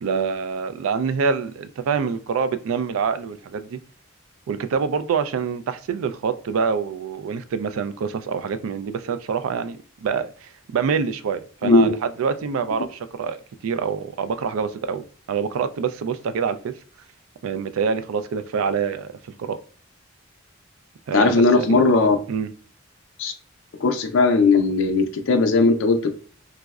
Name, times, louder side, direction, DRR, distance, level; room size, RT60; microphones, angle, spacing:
voice 1, 0.0-3.8 4.5-16.7 17.4-19.6 21.1-21.9 22.3-22.5, right 6 dB, 85° right, 0.3 m, -26 dB
voice 2, 21.1-22.2 23.2-23.3 23.8-26.1, left 3 dB, 70° left, 0.4 m, -18 dB
3.5 x 2.0 x 2.3 m
head